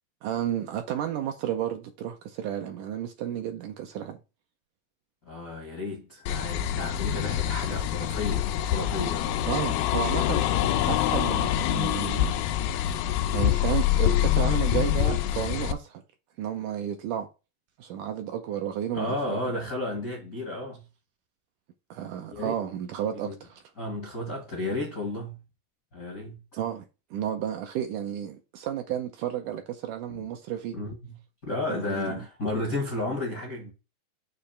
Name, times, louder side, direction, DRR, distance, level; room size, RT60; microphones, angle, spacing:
voice 1, 0.2-4.2 9.5-12.4 13.3-16.0 16.4-17.3 17.8-19.4 21.9-23.6 26.6-26.9 27.1-30.8 31.7-32.2, right 10 dB, 75° right, 2.0 m, -32 dB
voice 2, 5.2-9.3 18.9-20.8 22.3-22.5 23.1-23.4 23.8-25.4 25.9-26.4 30.1-30.2 30.7-31.1 31.4-33.7, left 2 dB, 50° left, 1.0 m, -33 dB
sound 1, 6.3-15.7, left 12 dB, 80° left, 2.1 m, -25 dB
6.7 x 3.1 x 5.5 m
omnidirectional pair, 4.2 m